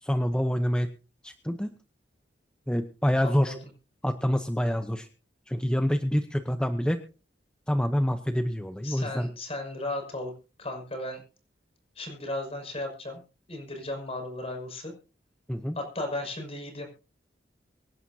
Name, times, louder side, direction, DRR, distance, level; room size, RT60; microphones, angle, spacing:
voice 1, 0.0-0.9 1.2-1.7 2.7-3.6 4.0-5.1 5.5-7.0 7.7-9.3 15.5-15.8, equal, 5° left, 7 dB, 0.8 m, -26 dB
voice 2, 3.2-3.6 8.8-10.3 10.6-11.2 11.9-13.2 13.5-14.9 15.7-16.9, left 1 dB, 35° left, 3 dB, 6.0 m, -35 dB
25.0 x 11.0 x 2.8 m, 0.34 s
head